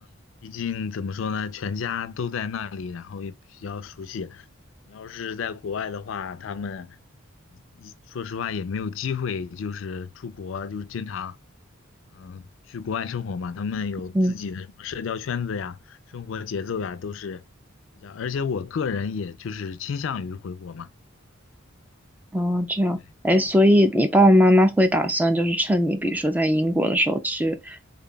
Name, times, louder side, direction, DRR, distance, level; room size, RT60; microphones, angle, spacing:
voice 1, 0.4-4.5 4.9-7.0 7.8-11.4 12.1-17.4 18.0-20.9, left 6 dB, 65° left, 0.4 m, -31 dB
voice 2, 22.3-23.0 23.2-27.9, equal, 10° right, 0.3 m, -20 dB
3.5 x 2.3 x 3.8 m
head